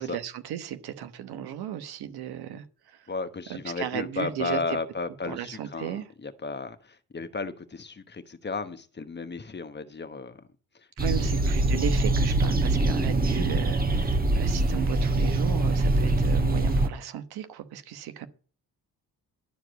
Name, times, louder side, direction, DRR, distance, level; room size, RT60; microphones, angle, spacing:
voice 1, 0.0-3.1 3.5-4.6 5.3-6.1 11.0-18.3, right 10 dB, 80° right, 1.2 m, -35 dB
voice 2, 3.1-10.4 10.7-11.3 12.9-13.1, left 4 dB, 30° left, 1.1 m, -34 dB
sound 1, 11.0-16.9, right 2 dB, 25° right, 1.2 m, -24 dB
11.5 x 4.7 x 7.9 m
cardioid pair, 70°, 38 cm